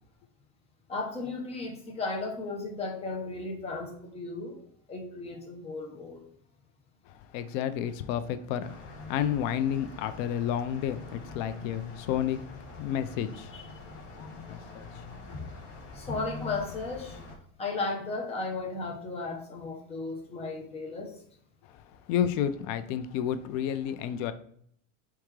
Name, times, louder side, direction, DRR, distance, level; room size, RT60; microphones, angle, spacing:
voice 1, 0.9-4.6 4.9-6.2 13.5-13.6 15.3-15.4 15.9-17.2 17.6-21.1, left 3 dB, 15° left, 0.7 m, -35 dB
voice 2, 7.1-13.6 14.0-15.1 21.7-24.3, left 9 dB, 85° left, 0.6 m, -31 dB
sound 1, 8.6-17.4, left 3 dB, 40° left, 1.0 m, -45 dB
4.6 x 3.5 x 3.1 m
cardioid pair, 170°, 37 cm